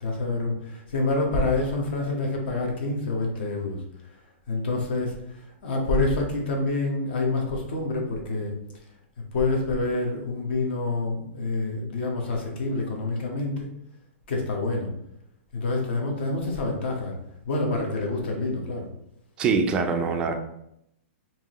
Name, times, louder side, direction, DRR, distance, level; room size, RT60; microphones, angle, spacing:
voice 1, 0.0-3.8 4.5-8.5 9.3-13.7 14.3-14.9 15.5-17.2 17.4-18.9, left 2 dB, 50° left, 1 dB, 1.0 m, -27 dB
voice 2, 19.4-20.3, right 4 dB, 15° right, 5 dB, 0.3 m, -23 dB
4.6 x 2.8 x 2.9 m, 0.77 s
hypercardioid pair, 170°, 7 cm